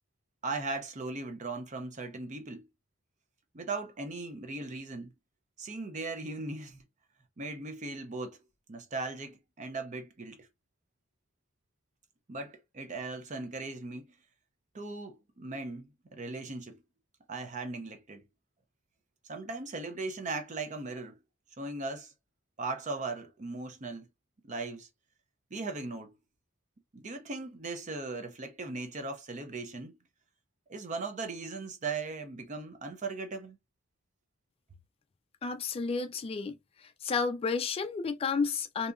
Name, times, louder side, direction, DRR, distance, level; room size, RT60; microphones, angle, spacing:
voice 1, 0.4-2.7 3.5-5.1 5.6-6.8 7.4-8.4 8.7-10.5 12.3-14.1 14.7-16.8 17.3-18.2 19.3-21.2 21.6-22.1 22.6-24.1 24.4-24.9 25.5-26.1 26.9-30.0 30.7-33.6, right 3 dB, 35° right, 0.5 m, -38 dB
voice 2, 35.4-36.5 36.8-38.9, left 5 dB, 30° left, 0.3 m, -31 dB
2.7 x 2.4 x 2.3 m
head